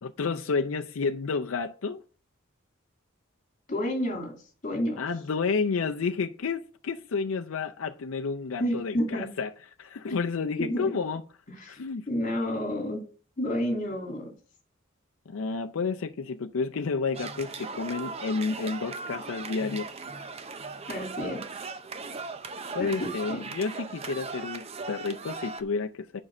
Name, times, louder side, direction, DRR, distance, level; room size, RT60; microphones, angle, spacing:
voice 1, 0.0-2.0 5.0-9.5 9.8-11.2 11.7-12.1 15.3-19.9 22.7-26.2, left 4 dB, 80° left, 0.5 m, -30 dB
voice 2, 3.7-4.3 4.6-5.0 8.6-9.3 10.6-10.9 11.6-11.8 12.1-13.0 13.4-14.3 20.9-21.4 22.8-22.9 23.3-23.5, equal, 40° left, 2.6 m, -29 dB
sound 1, 17.1-25.6, right 4 dB, 30° right, 0.6 m, -38 dB
7.4 x 5.4 x 6.0 m
head